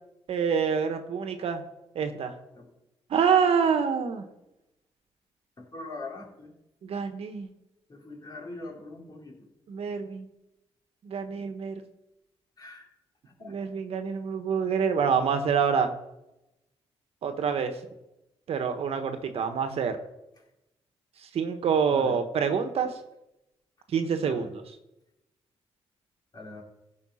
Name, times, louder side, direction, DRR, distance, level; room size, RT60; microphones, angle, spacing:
voice 1, 0.3-1.6 1.9-2.3 3.1-4.3 6.8-7.5 9.7-10.3 11.0-11.8 13.4-15.9 17.2-17.8 18.5-20.0 21.2-23.0 23.9-24.6, right 6 dB, 70° right, 7 dB, 1.3 m, -26 dB
voice 2, 5.6-6.5 7.9-9.5 12.6-12.9 13.3-13.6 21.9-22.2 24.2-24.5 26.3-26.6, left 2 dB, 40° left, -1 dB, 3.5 m, -42 dB
15.5 x 5.3 x 5.7 m, 0.90 s
cardioid pair, 90°, 11 cm